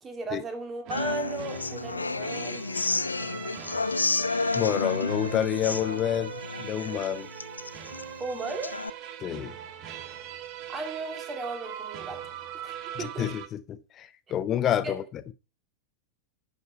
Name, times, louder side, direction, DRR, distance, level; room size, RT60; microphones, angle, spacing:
voice 1, 0.0-2.6 8.2-8.8 10.7-12.2 12.5-13.3 14.6-15.0, right 2 dB, 20° right, 2.3 m, -36 dB
sound 1, 0.8-13.5, right 10 dB, 40° right, 1.1 m, -41 dB
Human voice / Acoustic guitar, 0.9-8.9, left 3 dB, 80° left, 0.4 m, -31 dB
voice 2, 4.5-7.3 9.2-9.6 12.9-15.0, left 10 dB, 30° left, 0.8 m, -28 dB
11.0 x 5.4 x 4.3 m
figure-of-eight pair, 90°, 0 cm